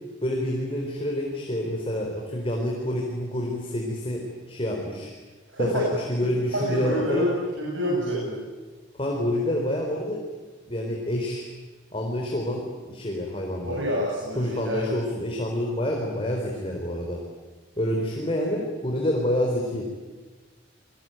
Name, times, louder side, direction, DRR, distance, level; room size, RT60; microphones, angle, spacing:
voice 1, 0.2-5.1 5.6-7.3 8.9-10.2 10.7-11.4 11.9-13.8 14.4-17.2 17.8-19.9, left 1 dB, 30° left, 0 dB, 4.1 m, -28 dB
voice 2, 5.5-5.9 6.5-7.3 7.6-8.4 13.6-14.8, equal, 75° right, -4 dB, 7.8 m, -27 dB
29.5 x 22.0 x 9.2 m, 1.3 s
head